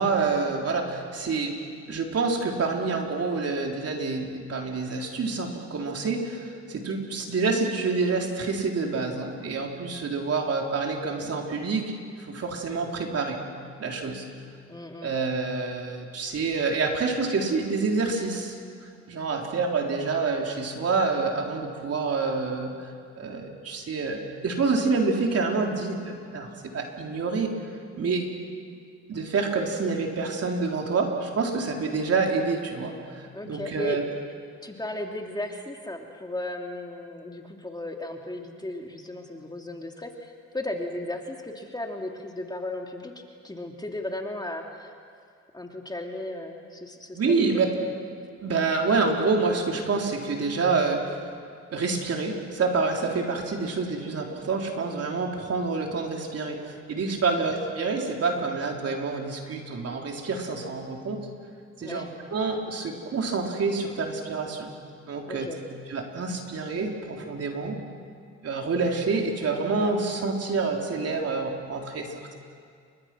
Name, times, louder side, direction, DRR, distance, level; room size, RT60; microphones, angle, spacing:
voice 1, 0.0-1.6 1.9-11.8 12.3-13.4 13.8-14.2 15.0-18.6 19.1-22.9 23.2-27.5 28.0-28.3 29.1-34.0 47.1-47.7 48.4-51.2 51.7-61.2 61.8-64.7 65.0-65.5 65.9-67.8 68.4-72.3, right 4 dB, 55° right, 1 dB, 4.1 m, -27 dB
voice 2, 14.7-15.2 33.3-34.0 34.6-43.1 43.4-44.9 45.5-47.2 47.5-47.7 57.2-57.5 61.8-62.1 65.3-65.6, left 1 dB, 15° left, 2 dB, 2.7 m, -35 dB
29.5 x 24.5 x 6.3 m, 2.2 s
cardioid pair, 90°, 30 cm